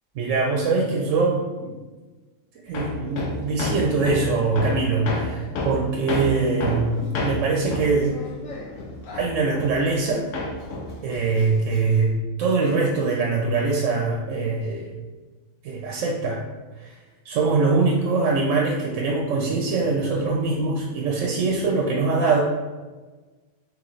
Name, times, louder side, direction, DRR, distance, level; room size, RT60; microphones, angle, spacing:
voice 1, 0.2-1.7 2.6-8.2 9.1-10.3 11.0-15.0 15.6-16.4 16.8-17.0 17.3-22.4, right 3 dB, 85° right, -1 dB, 0.9 m, -23 dB
Hammer, 2.7-10.1 10.3-12.1, left 2 dB, 85° left, 1.0 m, -30 dB
3.2 x 3.1 x 3.9 m, 1.3 s
omnidirectional pair, 1.3 m